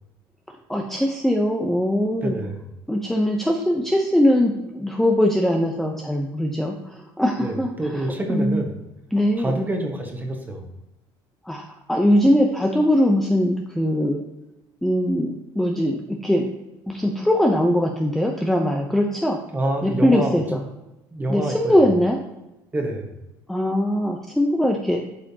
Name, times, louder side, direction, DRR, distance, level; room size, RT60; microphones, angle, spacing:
voice 1, 0.7-2.3 2.9-8.6 9.1-9.5 11.4-14.2 14.8-16.5 16.9-19.4 19.8-20.6 21.3-22.2 23.5-25.0, equal, 5° left, 1 dB, 0.6 m, -21 dB
voice 2, 2.2-2.7 7.4-8.8 9.4-10.7 19.5-20.4 21.1-21.8 22.7-23.1, right 1 dB, 20° right, 2 dB, 1.3 m, -27 dB
8.4 x 4.9 x 2.8 m, 0.95 s
cardioid pair, 100°, 9 cm